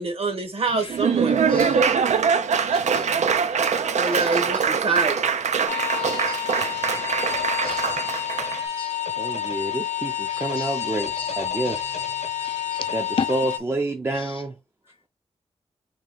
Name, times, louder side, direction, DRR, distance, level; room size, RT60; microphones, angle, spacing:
voice 1, 0.0-1.4 3.9-5.4, right 3 dB, 55° right, 1.2 m, -26 dB
voice 2, 0.7-1.0 1.5-1.8 2.7-3.0 4.0-4.6 4.9-5.0 5.7-6.4 6.7-6.8 7.6-7.9 8.8-8.9 10.3-10.7 11.1-11.4 11.7-11.8 12.4-12.9 13.2-13.3 14.2-14.3, left 6 dB, 50° left, 0.5 m, -35 dB
Laughter / Applause, 0.7-8.6, right 6 dB, 85° right, 0.5 m, -23 dB
sound 1, 5.7-13.6, left 9 dB, 70° left, 0.8 m, -29 dB
voice 3, 9.2-11.9 12.9-14.6, right 2 dB, 20° right, 0.4 m, -28 dB
3.3 x 3.0 x 3.7 m
wide cardioid pair, 125°, 12 cm